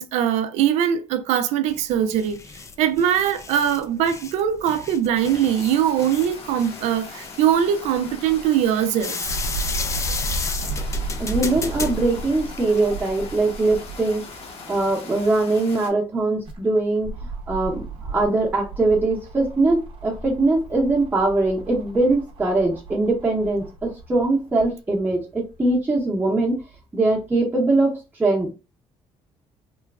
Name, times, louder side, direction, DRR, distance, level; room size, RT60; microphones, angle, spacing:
voice 1, 0.0-2.4 2.8-9.3, right 9 dB, 80° right, 0.4 m, -21 dB
sound 1, 1.7-13.0, left 5 dB, 25° left, 0.4 m, -34 dB
sound 2, 5.1-15.9, left 4 dB, 60° left, 0.9 m, -40 dB
sound 3, 9.2-14.3 14.7-14.8 16.2-24.7 25.5-25.6, right 3 dB, 50° right, 0.7 m, -33 dB
voice 2, 11.2-14.2 14.7-17.1 17.5-26.6 26.9-28.5, right 2 dB, 15° right, 0.8 m, -21 dB
3.0 x 2.2 x 2.3 m
cardioid pair, 95°, 12 cm